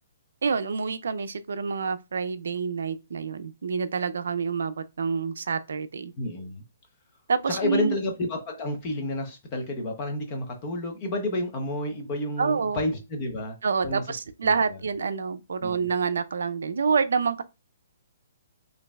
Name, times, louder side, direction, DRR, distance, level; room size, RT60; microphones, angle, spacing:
voice 1, 0.4-6.1 7.3-8.0 12.4-12.8 13.6-17.4, right 5 dB, 75° right, 0.4 m, -27 dB
voice 2, 6.2-6.6 7.5-13.6 13.8-14.0 14.4-14.8 15.6-15.9, left 1 dB, 20° left, 0.7 m, -30 dB
5.2 x 2.6 x 2.3 m
hypercardioid pair, 180°, 0 cm